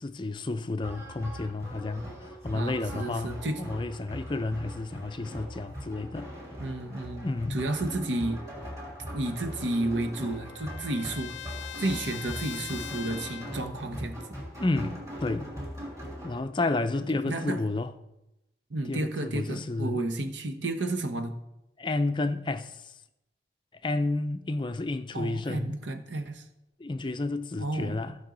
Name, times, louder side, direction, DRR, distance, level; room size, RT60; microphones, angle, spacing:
voice 1, 0.0-6.3 7.2-7.6 14.6-15.5 16.2-17.9 18.9-20.1 21.8-22.9 23.8-25.8 26.8-28.2, left 2 dB, 25° left, 0.4 m, -31 dB
sound 1, 0.8-16.4, equal, 20° right, 2.8 m, -41 dB
voice 2, 2.5-3.6 6.6-8.4 9.1-11.3 11.8-14.4 17.3-17.6 18.7-21.4 25.1-26.4 27.6-28.0, right 2 dB, 85° right, 1.0 m, -32 dB
Trumpet, 9.3-13.7, left 10 dB, 90° left, 0.4 m, -42 dB
15.5 x 5.5 x 3.9 m
head